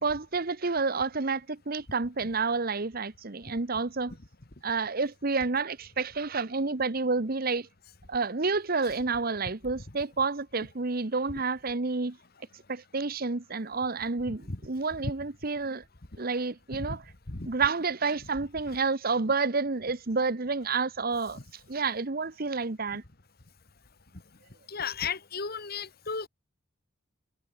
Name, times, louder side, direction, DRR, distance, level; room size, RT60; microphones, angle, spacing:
voice 1, 0.0-4.1 4.6-7.7 8.1-12.2 12.7-15.8 16.2-17.0 17.4-21.4 21.7-23.0, right 4 dB, 50° right, 1.0 m, -29 dB
voice 2, 14.3-14.6 16.7-17.0 17.3-17.5 21.3-21.4 24.7-26.3, left 5 dB, 50° left, 1.7 m, -35 dB
head